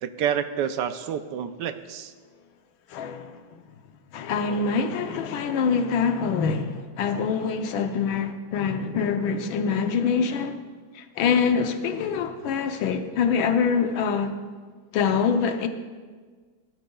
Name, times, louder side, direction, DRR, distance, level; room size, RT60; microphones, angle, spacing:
voice 1, 0.0-2.1, right 8 dB, 75° right, 1.1 m, -28 dB
voice 2, 2.9-3.6 4.1-10.6 10.9-14.4 14.9-15.7, left 6 dB, 85° left, 1.6 m, -25 dB
18.0 x 12.0 x 2.3 m
omnidirectional pair, 2.1 m